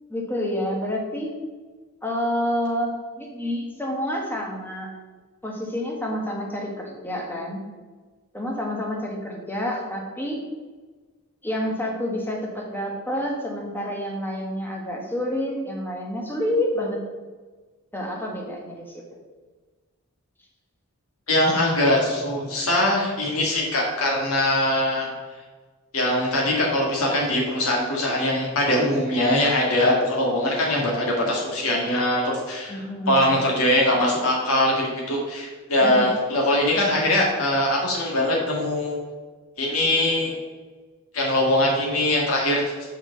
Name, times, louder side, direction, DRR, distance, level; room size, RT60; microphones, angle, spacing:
voice 1, 0.1-1.3 2.0-4.9 5.4-7.6 8.3-10.4 11.4-17.0 17.9-19.0 32.7-33.4 35.8-36.1, left 1 dB, 10° left, -1 dB, 1.2 m, -28 dB
voice 2, 21.3-25.1 25.9-32.8 33.1-39.0 39.6-40.3 41.1-42.9, left 1 dB, 80° left, -3 dB, 1.7 m, -22 dB
6.0 x 4.9 x 6.5 m, 1.3 s
head